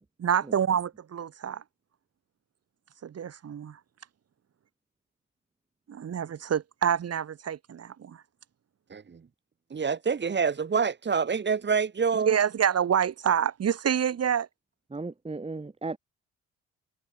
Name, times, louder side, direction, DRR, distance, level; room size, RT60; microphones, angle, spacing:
voice 1, 0.2-1.6 3.0-3.8 5.9-8.2 12.1-14.5, right 8 dB, 55° right, 3.8 m, -27 dB
voice 2, 8.9-9.2 9.7-12.3, right 6 dB, 35° right, 2.5 m, -27 dB
voice 3, 14.9-16.0, right 3 dB, 20° right, 4.0 m, -35 dB
cardioid pair, 90°, 30 cm